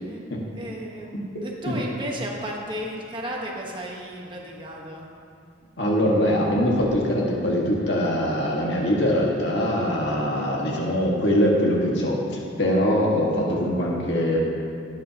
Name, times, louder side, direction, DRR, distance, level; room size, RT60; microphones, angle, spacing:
voice 1, 0.5-1.1 1.4-5.1, equal, 25° right, -1 dB, 1.3 m, -33 dB
voice 2, 5.8-14.4, equal, 75° left, -3 dB, 1.8 m, -22 dB
18.0 x 8.9 x 2.9 m, 2.5 s
head